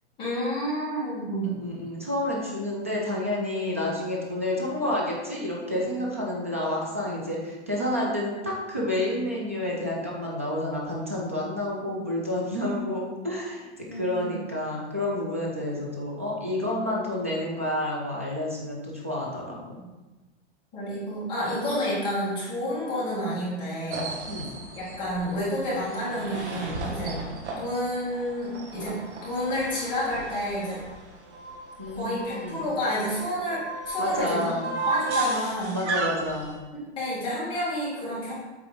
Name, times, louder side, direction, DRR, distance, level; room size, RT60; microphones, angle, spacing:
voice 1, 0.2-1.6 11.9-12.0 13.9-14.4 19.5-19.9 20.7-24.1 24.7-27.2 27.5-30.8 32.0-34.6 34.8-35.8 37.0-38.3, equal, 15° left, -10 dB, 2.1 m, -30 dB
voice 2, 1.6-19.6 24.3-24.5 27.0-27.2 31.8-32.7 34.0-34.8 35.7-36.6, left 1 dB, 15° right, -3 dB, 0.3 m, -29 dB
sound 1, 23.9-36.6, right 3 dB, 70° right, 1.6 m, -35 dB
7.7 x 3.6 x 5.0 m, 1.2 s
hypercardioid pair, 170°, 35 cm